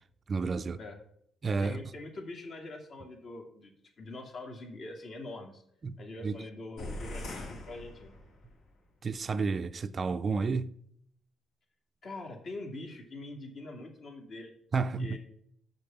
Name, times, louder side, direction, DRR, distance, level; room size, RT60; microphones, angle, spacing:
voice 1, 0.3-0.8 1.4-1.8 5.8-6.0 6.2-6.4 9.0-10.7 14.7-15.2, right 4 dB, 40° right, 0.4 m, -31 dB
voice 2, 1.6-5.6 6.0-8.2 12.0-14.5 15.0-15.2, left 2 dB, 55° left, 2.3 m, -44 dB
sound 1, 6.8-8.6, left 1 dB, 75° left, 2.4 m, -41 dB
6.7 x 5.9 x 7.0 m
cardioid pair, 90°, 0 cm